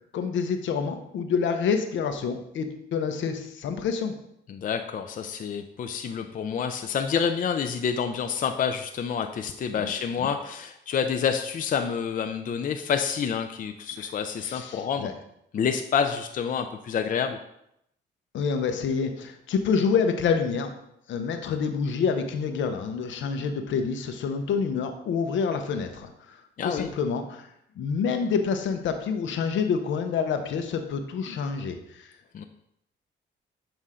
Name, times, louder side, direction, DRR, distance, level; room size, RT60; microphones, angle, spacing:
voice 1, 0.1-4.2 9.8-9.9 10.2-10.3 14.4-15.1 18.3-20.7 21.1-26.4 26.6-27.5 27.8-32.1, left 6 dB, 75° left, 7 dB, 0.8 m, -27 dB
voice 2, 4.5-15.1 15.5-17.4 26.6-26.9 32.3-32.4, left 7 dB, 45° left, 6 dB, 0.5 m, -28 dB
7.5 x 2.7 x 4.8 m, 0.77 s
cardioid pair, 90°, 20 cm